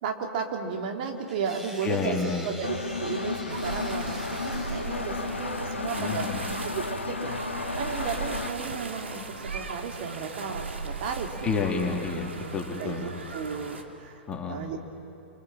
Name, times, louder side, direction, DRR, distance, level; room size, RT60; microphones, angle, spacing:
voice 1, 0.0-2.2 2.4-6.3 6.6-7.4 7.8-11.5 12.8-14.2 14.5-14.8, right 6 dB, 50° right, 2 dB, 2.8 m, -34 dB
sound 1, 1.3-6.6, equal, 5° right, 3.5 m, -46 dB
voice 2, 1.8-2.5 6.0-6.5 11.4-13.2 14.3-14.7, left 5 dB, 15° left, 1 dB, 3.3 m, -30 dB
Engine, 2.6-8.5, left 4 dB, 80° left, 1.6 m, -33 dB
sound 2, 3.5-13.8, right 4 dB, 75° right, 2.6 m, -37 dB
27.5 x 26.5 x 7.5 m, 2.6 s
figure-of-eight pair, 105°, 6 cm